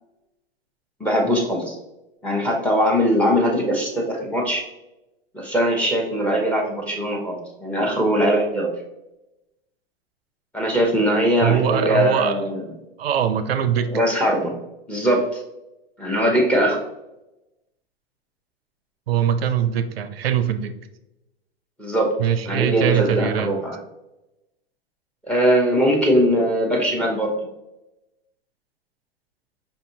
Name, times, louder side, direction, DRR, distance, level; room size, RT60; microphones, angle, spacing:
voice 1, 1.0-1.8 2.2-4.6 5.3-8.7 10.5-12.6 13.9-14.5 14.9-15.4 16.0-16.8 21.8-22.1 22.5-23.8 25.2-27.3, equal, 5° left, 0 dB, 0.8 m, -21 dB
voice 2, 11.4-12.4 13.0-14.0 19.1-20.7 22.2-23.5, right 9 dB, 85° right, 10 dB, 0.5 m, -22 dB
5.3 x 2.7 x 2.7 m, 0.94 s
hypercardioid pair, 115°, 29 cm